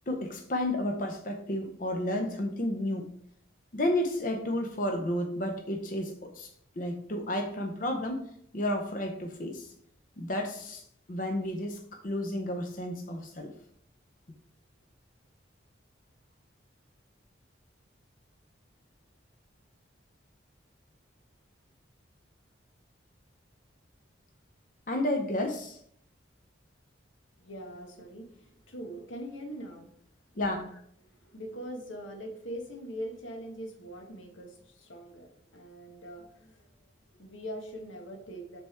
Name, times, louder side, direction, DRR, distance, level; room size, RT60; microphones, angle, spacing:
voice 1, 0.1-3.1 3.7-6.5 6.8-8.2 8.5-9.7 10.2-10.8 11.1-13.5 24.9-25.8 30.4-30.7, left 1 dB, 45° left, 4 dB, 0.6 m, -31 dB
voice 2, 27.4-29.9 30.7-38.6, equal, 90° left, 3 dB, 1.3 m, -42 dB
7.1 x 3.4 x 4.4 m, 0.66 s
head